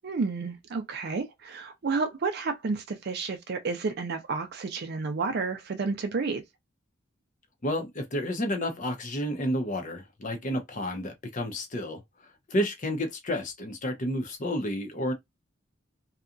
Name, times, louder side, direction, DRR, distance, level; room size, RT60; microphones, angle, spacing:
voice 1, 0.0-6.4, right 4 dB, 55° right, 0.4 m, -31 dB
voice 2, 7.6-12.0 12.5-15.1, equal, 40° left, 0.7 m, -30 dB
2.7 x 2.3 x 2.5 m
head